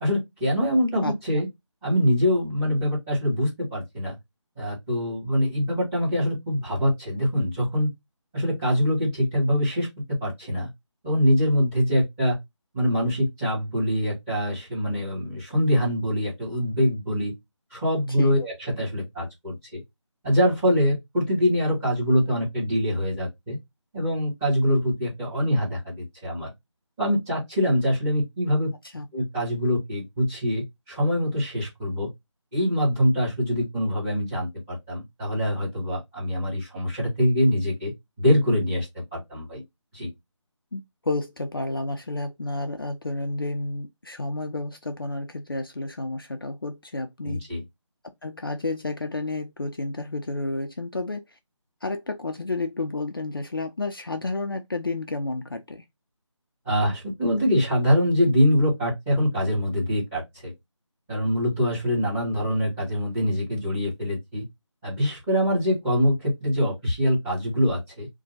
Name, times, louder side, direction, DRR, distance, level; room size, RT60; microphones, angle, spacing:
voice 1, 0.0-1.5 1.8-4.1 4.6-7.9 8.3-10.7 11.0-12.4 12.7-17.3 17.7-19.8 20.2-23.6 23.9-26.5 27.0-28.7 29.1-32.1 32.5-37.9 38.2-38.9 39.1-39.6 39.9-40.1 47.2-47.6 56.6-60.5 61.1-64.4 64.8-68.1, equal, 5° right, 0.9 m, -24 dB
voice 2, 40.7-47.4 48.2-51.2 51.8-55.8, left 2 dB, 45° left, 0.4 m, -31 dB
2.6 x 2.2 x 3.9 m
figure-of-eight pair, 160°, 16 cm